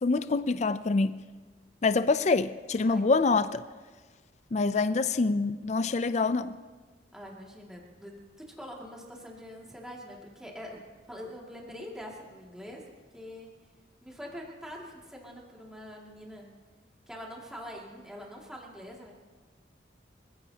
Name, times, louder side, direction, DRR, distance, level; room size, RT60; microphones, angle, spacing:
voice 1, 0.0-1.2 1.8-3.6 4.5-6.5, left 3 dB, 40° left, 0.4 m, -26 dB
voice 2, 2.9-3.3 7.1-12.8 13.1-13.5 14.0-16.5 17.1-19.1, equal, 5° right, 2.3 m, -44 dB
25.5 x 16.0 x 2.9 m
head